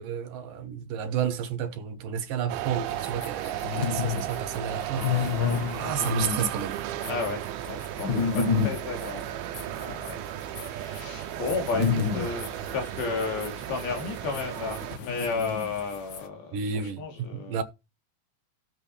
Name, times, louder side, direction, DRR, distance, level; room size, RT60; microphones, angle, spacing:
voice 1, 0.0-5.4 5.8-6.8 16.5-17.6, right 7 dB, 70° right, 2.8 m, -31 dB
sound 1, 2.5-15.0, right 13 dB, 90° right, 2.7 m, -35 dB
sound 2, 2.9-16.2, left 6 dB, 60° left, 1.2 m, -31 dB
voice 2, 7.1-16.6 17.0-17.6, left 4 dB, 85° left, 5.0 m, -33 dB
16.0 x 8.2 x 3.3 m
omnidirectional pair, 4.3 m